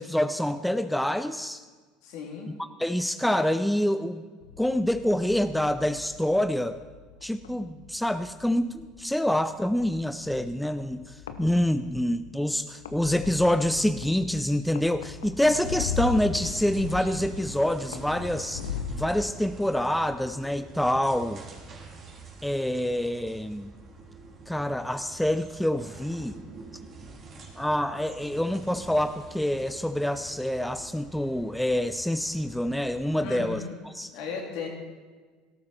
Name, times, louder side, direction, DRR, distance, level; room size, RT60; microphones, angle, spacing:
voice 1, 0.0-1.6 2.8-4.3 4.6-6.8 7.2-18.6 18.9-21.4 22.4-23.7 24.5-26.4 27.6-33.6 33.9-34.1, left 1 dB, 5° left, 10 dB, 0.6 m, -26 dB
voice 2, 2.0-2.6 33.2-33.8 34.1-34.7, left 6 dB, 65° left, 0 dB, 3.5 m, -36 dB
sound 1, 4.4-19.1, left 6 dB, 85° left, 1.0 m, -39 dB
sound 2, 15.6-33.5, right 3 dB, 40° right, 3.5 m, -46 dB
17.5 x 13.5 x 4.5 m, 1.4 s
hypercardioid pair, 75°, 0 cm